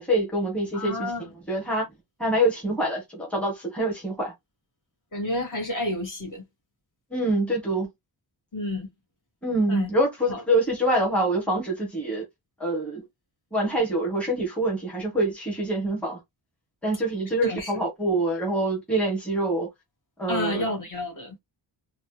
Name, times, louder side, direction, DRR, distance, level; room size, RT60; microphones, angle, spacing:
voice 1, 0.0-1.1 1.5-1.8 2.2-4.3 7.1-7.9 9.4-12.2 12.6-13.0 13.5-16.2 16.8-19.7 20.2-20.6, right 1 dB, 5° left, 1.5 m, -25 dB
voice 2, 0.7-1.3 5.1-6.4 8.5-8.9 9.7-9.9 10.3-10.4 17.4-17.7 20.3-21.3, left 1 dB, 45° left, 2.2 m, -30 dB
4.2 x 2.4 x 3.3 m
wide cardioid pair, 155°, 43 cm